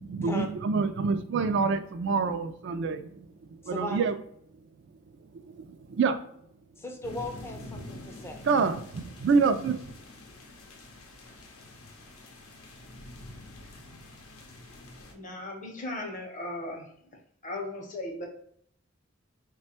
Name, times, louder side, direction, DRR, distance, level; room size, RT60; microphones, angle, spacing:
voice 1, 0.1-3.0 3.7-4.1 6.0-6.1 8.5-9.8, right 4 dB, 55° right, 8 dB, 0.3 m, -26 dB
voice 2, 3.7-4.0 6.8-8.4, left 1 dB, 10° left, 3 dB, 0.4 m, -37 dB
sound 1, 7.0-15.1, left 1 dB, 85° left, 0.7 m, -46 dB
voice 3, 15.1-16.9 17.4-18.3, left 1 dB, 35° left, 1 dB, 0.7 m, -37 dB
3.3 x 2.2 x 4.2 m, 0.68 s
head